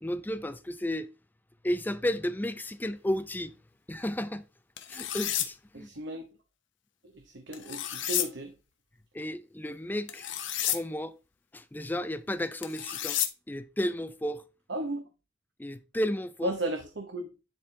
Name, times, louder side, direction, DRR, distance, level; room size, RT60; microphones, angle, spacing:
voice 1, 0.0-1.1 1.6-3.5 3.9-4.4 4.9-5.9 9.1-10.3 10.6-11.1 11.5-13.2 13.5-14.4 15.6-16.5, left 1 dB, 10° left, 0.5 m, -33 dB
sound 1, 4.8-5.5 7.5-8.3 10.1-10.8 12.6-13.3, left 11 dB, 80° left, 1.0 m, -31 dB
voice 2, 5.7-6.2 7.3-8.5 14.7-15.0 16.4-17.3, right 1 dB, 65° right, 1.0 m, -34 dB
10.5 x 4.4 x 3.3 m
head